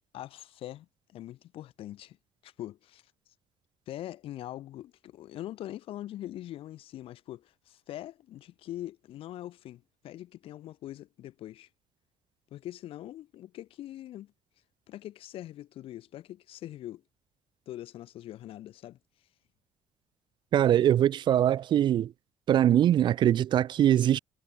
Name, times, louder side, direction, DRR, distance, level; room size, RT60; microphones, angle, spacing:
voice 1, 0.1-2.2 2.4-3.1 3.9-11.7 12.5-14.3 14.9-17.0 17.7-19.0, left 13 dB, 70° left, 3.7 m, -42 dB
voice 2, 20.5-22.1 22.5-24.2, right 11 dB, 50° right, 0.4 m, -22 dB
cardioid pair, 105°, 10 cm